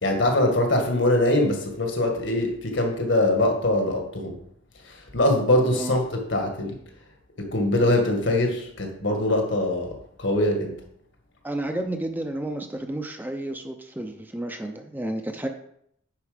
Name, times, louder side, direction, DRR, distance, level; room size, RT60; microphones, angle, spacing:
voice 1, 0.0-4.4 4.8-6.8 7.4-10.8, left 1 dB, 65° left, 3 dB, 1.6 m, -23 dB
voice 2, 11.4-15.5, right 1 dB, 10° right, 5 dB, 0.5 m, -31 dB
9.8 x 4.4 x 5.0 m, 0.69 s
head